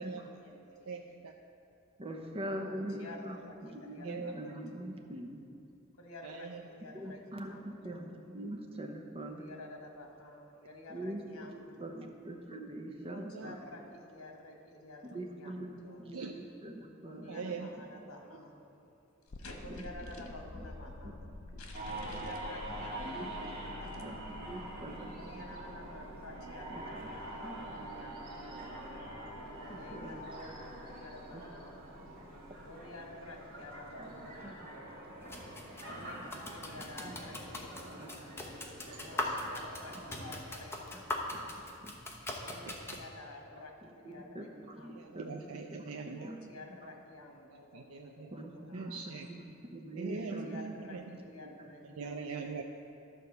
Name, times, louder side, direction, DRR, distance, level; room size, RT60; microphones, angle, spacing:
voice 1, 0.0-1.0 2.5-4.7 6.0-8.1 9.2-12.0 13.0-16.1 17.0-18.5 18.8-19.0 19.4-21.3 21.6-24.2 25.2-28.6 29.6-31.8 32.6-34.9 35.8-38.2 39.0-41.6 42.4-45.3 46.1-49.2 50.1-52.6, left 2 dB, 80° left, 1 dB, 1.4 m, -51 dB
voice 2, 0.7-1.3 4.0-4.3 6.2-6.6 13.3-13.5 16.1-16.3 17.3-17.8 39.2-39.4 44.9-46.3 47.5-48.3 48.7-49.3 50.0-51.2 51.8-52.6, right 5 dB, 80° right, 3 dB, 0.5 m, -42 dB
voice 3, 2.0-5.4 6.9-7.6 7.8-9.5 10.9-11.2 11.5-13.6 15.1-17.6 19.7-19.8 20.2-20.3 20.5-20.6 21.0-21.1 23.0-23.6 24.0-25.5 26.7-26.8 27.4-27.9 29.7-30.2 31.3-31.4 33.8-34.1 34.4-34.5 37.0-37.1 38.0-38.1 40.9-41.0 41.3-41.4 41.8-41.9 43.8-45.4 45.7-46.4 48.3-48.9 49.2-49.4 49.7-50.6 51.0-51.1 51.4-51.6, right 1 dB, 25° right, 2 dB, 0.8 m, -43 dB
sound 1, 19.3-36.2, left 2 dB, 50° left, 0.5 m, -51 dB
sound 2, 21.7-40.3, right 1 dB, 45° right, 2.0 m, -45 dB
sound 3, 35.2-43.0, left 1 dB, 10° left, 0.8 m, -41 dB
11.5 x 4.5 x 6.7 m, 2.8 s
head